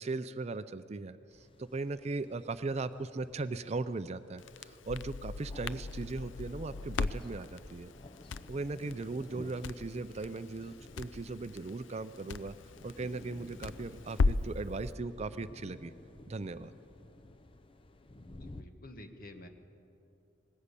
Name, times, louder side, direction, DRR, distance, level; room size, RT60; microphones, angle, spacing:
voice 1, 0.0-7.9 8.5-12.6 12.8-15.9 16.3-16.7, right 3 dB, 35° right, 12 dB, 0.4 m, -38 dB
sound 1, 1.3-18.6, left 1 dB, 25° left, 0.6 m, -53 dB
Crackle, 4.4-14.6, left 3 dB, 70° left, 0.5 m, -37 dB
voice 2, 18.4-19.5, left 1 dB, 50° left, 6 dB, 1.5 m, -50 dB
20.0 x 16.0 x 8.3 m, 2.8 s
head